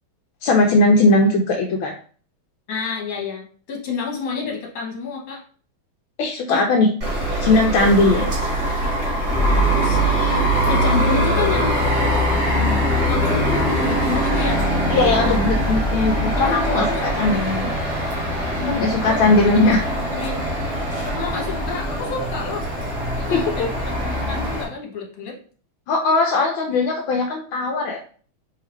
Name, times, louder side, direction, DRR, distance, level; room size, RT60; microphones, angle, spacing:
voice 1, 0.4-1.9 6.2-6.9 7.4-8.2 14.9-17.7 18.5-19.8 23.3-23.7 25.9-28.0, left 2 dB, 75° left, 1 dB, 1.4 m, -19 dB
voice 2, 2.7-5.4 6.5-6.6 8.0-8.3 9.5-12.3 13.1-14.7 16.4-17.7 19.0-19.2 19.5-19.7 20.1-20.5 21.0-22.7 23.3-25.4, left 4 dB, 45° left, -1 dB, 1.5 m, -29 dB
sound 1, 7.0-24.6, equal, 45° right, 2.1 m, -22 dB
4.8 x 3.3 x 3.1 m, 0.42 s
omnidirectional pair, 2.4 m